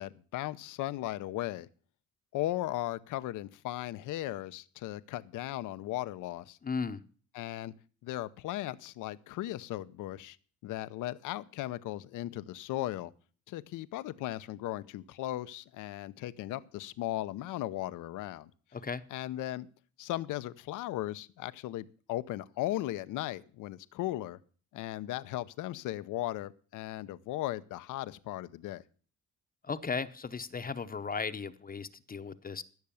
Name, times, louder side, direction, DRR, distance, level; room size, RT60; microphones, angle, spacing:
voice 1, 0.0-1.7 2.3-6.6 7.3-7.7 8.0-10.4 10.6-13.1 13.5-18.5 19.1-19.7 20.0-24.4 24.7-28.8, left 15 dB, 90° left, 15 dB, 0.8 m, -37 dB
voice 2, 6.6-7.0 18.7-19.0 29.6-32.6, left 5 dB, 30° left, 10 dB, 0.8 m, -36 dB
15.5 x 6.7 x 7.0 m, 0.42 s
cardioid pair, 90°, 30 cm